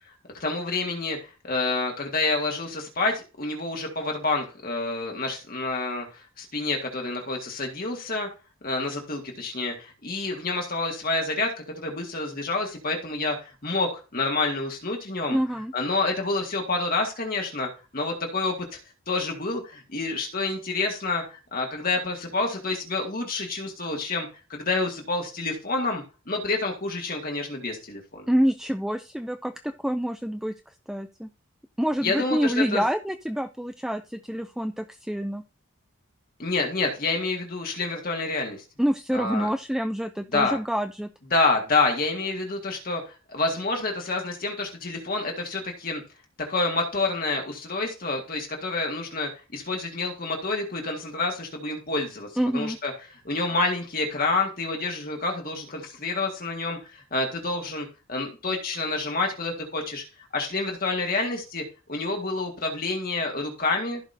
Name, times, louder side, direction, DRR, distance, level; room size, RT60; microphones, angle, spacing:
voice 1, 0.4-8.3 8.6-15.4 15.7-18.5 19.1-28.2 32.0-32.8 36.4-38.6 39.1-39.5 40.3-40.6 41.3-46.0 46.5-52.3 52.5-52.9 53.3-60.0 60.3-61.6 61.9-64.0, left 3 dB, 45° left, 1 dB, 1.8 m, -28 dB
voice 2, 15.3-15.7 28.3-31.3 31.8-35.4 38.8-41.1 52.4-52.8, equal, ahead, 8 dB, 0.3 m, -27 dB
15.0 x 5.1 x 2.7 m, 0.32 s
head